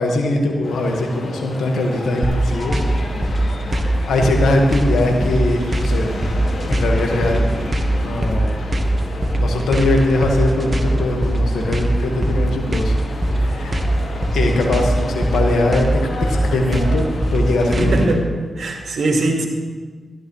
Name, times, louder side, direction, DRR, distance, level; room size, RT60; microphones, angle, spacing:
voice 1, 0.0-2.8 3.2-3.5 4.1-6.1 6.7-7.5 8.0-8.6 9.4-13.0 13.3-13.8 14.3-15.9 16.2-18.2, left 2 dB, 85° left, 1 dB, 1.8 m, -21 dB
sound 1, 0.6-18.1, left 2 dB, 70° left, 2.3 m, -32 dB
sound 2, 2.2-18.1, right 1 dB, 45° right, 1.5 m, -20 dB
voice 2, 17.8-18.2 18.6-19.5, right 2 dB, 75° right, 1 dB, 2.1 m, -20 dB
14.0 x 12.5 x 3.3 m, 1.4 s
supercardioid pair, 45°, 0 cm